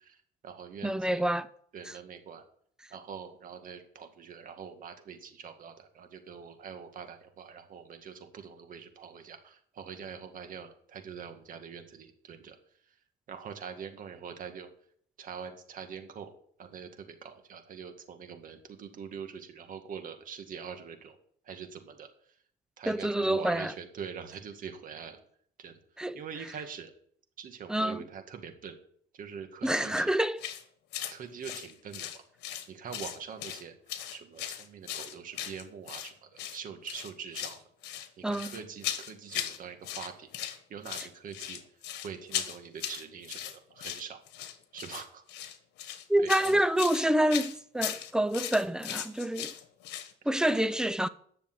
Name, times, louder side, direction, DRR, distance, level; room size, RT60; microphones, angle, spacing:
voice 1, 0.0-1.3 1.7-2.4 2.9-12.6 13.3-14.7 15.2-16.3 16.6-21.2 21.4-22.1 22.8-25.2 25.6-25.8 26.1-26.9 27.4-28.8 29.1-30.1 31.1-32.2 32.7-33.8 34.1-37.6 38.2-40.3 40.7-41.6 42.0-44.2 44.7-45.2 46.2-46.6, right 7 dB, 55° right, 1.9 m, -44 dB
voice 2, 0.8-1.5 22.9-23.7 26.0-26.2 27.7-28.0 29.6-30.4 38.2-38.6 46.1-49.5 50.2-51.1, right 1 dB, 5° right, 0.6 m, -27 dB
sound 1, 30.4-30.6 30.9-31.2 31.4-32.7 32.9-33.6 33.9-36.1 36.4-36.6 36.9-37.6 37.8-39.6 39.8-40.6 40.8-50.1, left 11 dB, 85° left, 1.4 m, -38 dB
10.5 x 6.8 x 7.8 m
cardioid pair, 110°, 17 cm